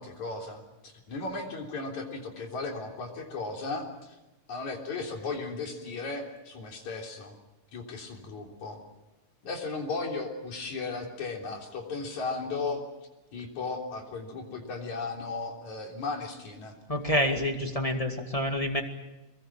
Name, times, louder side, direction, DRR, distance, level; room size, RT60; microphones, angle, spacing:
voice 1, 0.0-4.2 4.5-7.4 7.7-8.8 9.4-12.8 13.3-16.8, left 3 dB, 60° left, 1 dB, 4.8 m, -36 dB
voice 2, 16.9-18.8, left 1 dB, 15° left, 4 dB, 1.5 m, -27 dB
26.0 x 22.0 x 7.5 m, 1.0 s
omnidirectional pair, 3.8 m